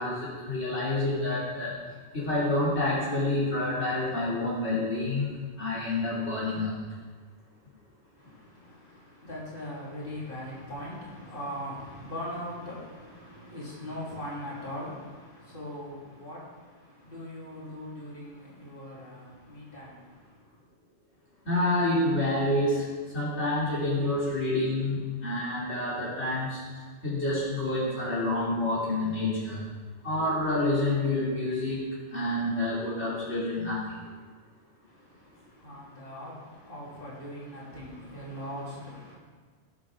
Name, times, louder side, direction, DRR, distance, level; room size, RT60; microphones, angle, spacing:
voice 1, 0.0-1.8 2.1-6.8 21.4-29.7 30.0-34.0, left 2 dB, 70° left, -8 dB, 3.3 m, -28 dB
voice 2, 8.1-20.7 34.8-39.2, left 1 dB, 45° left, -7 dB, 3.7 m, -41 dB
18.5 x 8.9 x 3.7 m, 1.5 s
omnidirectional pair, 1.2 m